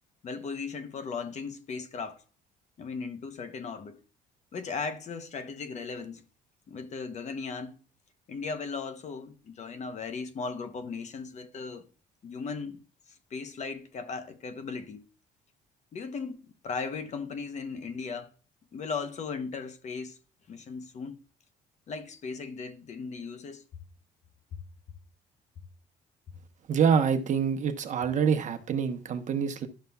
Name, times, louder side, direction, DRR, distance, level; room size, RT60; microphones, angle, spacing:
voice 1, 0.2-2.2 2.8-4.0 4.5-6.2 6.7-7.8 8.3-11.9 12.2-12.8 13.3-15.0 15.9-18.3 18.7-20.2 20.5-21.2 21.9-23.6 24.5-24.6, left 5 dB, 45° left, 0.8 m, -37 dB
voice 2, 26.7-29.7, right 7 dB, 45° right, 1.0 m, -26 dB
11.5 x 6.6 x 2.3 m
cardioid pair, 110°, 17 cm